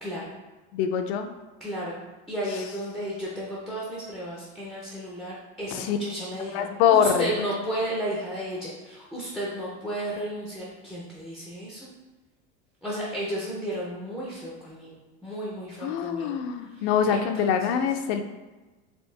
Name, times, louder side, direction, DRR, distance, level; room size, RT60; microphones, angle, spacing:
voice 1, 0.0-0.3 1.6-2.0 2.3-6.6 6.9-11.9 12.8-16.4 16.6-17.9, right 1 dB, ahead, -5 dB, 0.4 m, -33 dB
voice 2, 0.7-1.3 5.8-6.0 6.5-7.3 15.8-18.2, left 8 dB, 60° left, 6 dB, 0.5 m, -24 dB
4.4 x 2.7 x 3.2 m, 1.2 s
supercardioid pair, 140°, 36 cm